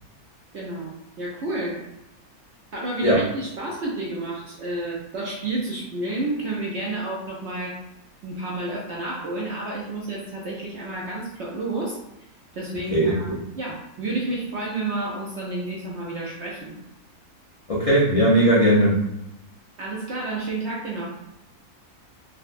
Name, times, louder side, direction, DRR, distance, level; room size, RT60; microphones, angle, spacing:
voice 1, 0.5-1.9 2.7-7.8 8.2-12.0 12.5-16.8 19.8-21.1, right 2 dB, 65° right, -4 dB, 0.7 m, -30 dB
voice 2, 17.7-19.0, right 1 dB, 55° left, -7 dB, 0.3 m, -18 dB
3.7 x 2.1 x 2.5 m, 0.88 s
omnidirectional pair, 1.6 m